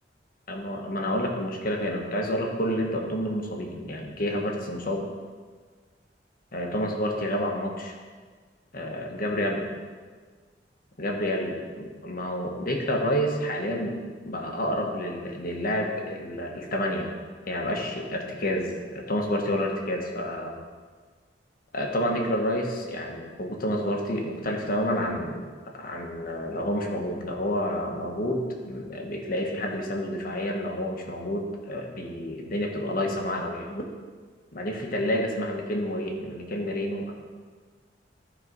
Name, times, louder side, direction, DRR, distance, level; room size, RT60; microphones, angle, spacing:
voice 1, 0.5-5.1 6.5-7.9 8.7-9.6 11.0-13.9 14.2-17.1 17.5-20.6 21.7-25.4 25.8-33.8 34.5-37.1, equal, 50° left, 1 dB, 1.5 m, -29 dB
14.0 x 4.8 x 5.4 m, 1.5 s
head